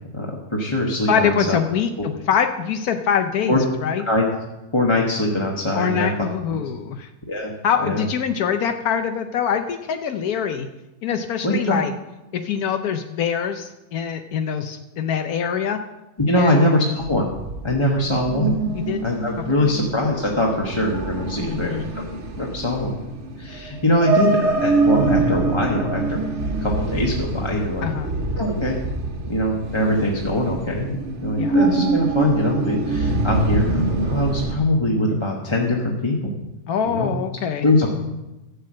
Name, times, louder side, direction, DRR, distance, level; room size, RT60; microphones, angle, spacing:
voice 1, 0.1-1.6 3.5-3.6 4.1-4.2 4.7-6.1 6.5-6.6 7.3-7.5 7.8-8.0 11.4-11.8 16.3-17.3 17.6-18.5 19.0-21.8 22.4-22.9 23.4-26.2 26.6-27.9 28.4-28.8 29.3-31.0 31.2-36.3 36.9-37.1 37.6-37.9, left 1 dB, 20° left, -2 dB, 1.2 m, -22 dB
voice 2, 1.1-4.0 5.7-7.1 7.6-10.7 11.0-11.9 12.3-15.8 16.4-16.6 17.9-18.2 18.7-19.0 21.4-21.9 27.8-28.1 31.4-31.6 36.7-37.7, left 7 dB, 80° left, 7 dB, 1.2 m, -24 dB
sound 1, 17.0-34.5, right 2 dB, 50° right, 1.4 m, -25 dB
12.0 x 6.7 x 7.5 m, 1.0 s
omnidirectional pair, 1.6 m